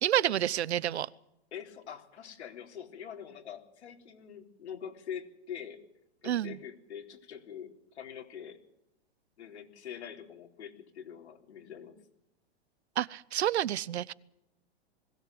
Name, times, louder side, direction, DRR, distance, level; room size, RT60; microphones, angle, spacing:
voice 1, 0.0-1.1 6.2-6.6 13.0-14.1, right 11 dB, 80° right, 22 dB, 0.9 m, -29 dB
voice 2, 1.5-5.8 6.2-8.6 9.4-12.0, left 8 dB, 85° left, 2 dB, 4.0 m, -44 dB
21.0 x 16.5 x 7.9 m, 0.87 s
hypercardioid pair, 155°, 33 cm